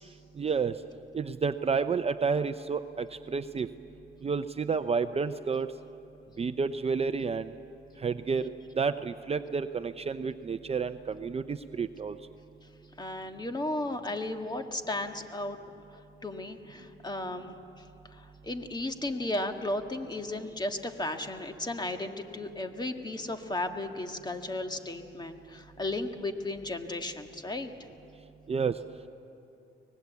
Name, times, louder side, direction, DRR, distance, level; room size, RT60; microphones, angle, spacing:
voice 1, 0.4-0.8 1.1-3.7 4.2-5.7 6.4-7.5 8.0-12.2 28.5-28.8, right 5 dB, 30° right, 10 dB, 0.6 m, -30 dB
voice 2, 13.0-15.6 16.2-27.7, left 2 dB, 20° left, 6 dB, 1.8 m, -35 dB
24.5 x 20.0 x 8.4 m, 2.8 s
cardioid pair, 90°, 20 cm